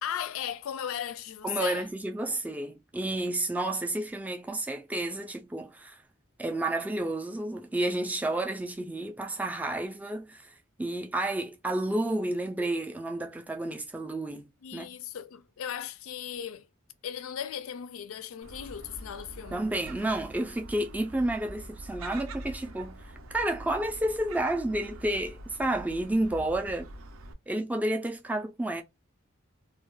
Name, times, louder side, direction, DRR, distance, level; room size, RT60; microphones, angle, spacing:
voice 1, 0.0-1.9 14.6-16.7 17.0-19.7, left 9 dB, 75° left, 0.3 m, -37 dB
voice 2, 1.4-6.0 6.4-10.5 10.8-14.9 19.5-26.9 27.5-28.8, right 1 dB, 5° right, 0.3 m, -31 dB
Gull seagull, 18.4-27.3, right 1 dB, 75° right, 0.5 m, -45 dB
2.2 x 2.2 x 3.0 m
head